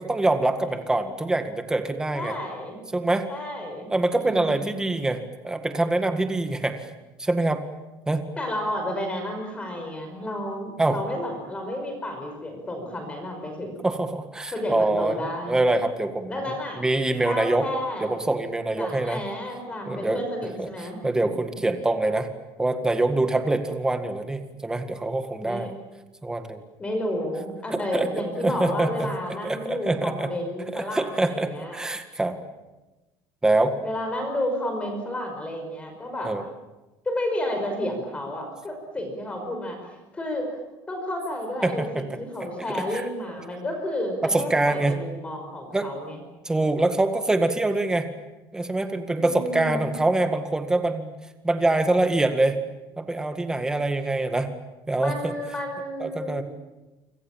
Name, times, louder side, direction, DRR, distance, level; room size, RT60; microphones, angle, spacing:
voice 1, 0.0-2.3 2.9-3.3 3.9-6.9 7.2-7.6 8.1-8.3 10.8-11.0 13.8-17.7 18.0-19.2 19.9-20.2 20.6-22.3 22.6-25.7 26.2-26.6 27.7-28.1 28.4-29.1 29.4-30.3 30.7-32.3 33.4-33.8 36.2-36.4 41.6-42.0 42.7-43.1 44.3-45.0 45.7-45.9 46.5-48.1 48.5-51.1 51.4-52.6 53.0-54.5 54.9-55.3 56.0-56.4, right 2 dB, 10° right, 7 dB, 1.9 m, -25 dB
voice 2, 2.1-2.8 3.3-3.9 4.2-4.8 8.4-14.0 14.5-15.6 16.3-16.8 17.2-18.2 18.8-21.4 25.4-25.7 26.8-31.8 33.8-36.3 37.1-39.8 40.1-40.5 40.9-46.2 49.1-49.9 55.0-56.4, left 1 dB, 15° left, 4 dB, 5.4 m, -31 dB
27.5 x 26.0 x 7.4 m, 1.1 s
cardioid pair, 170°, 9 cm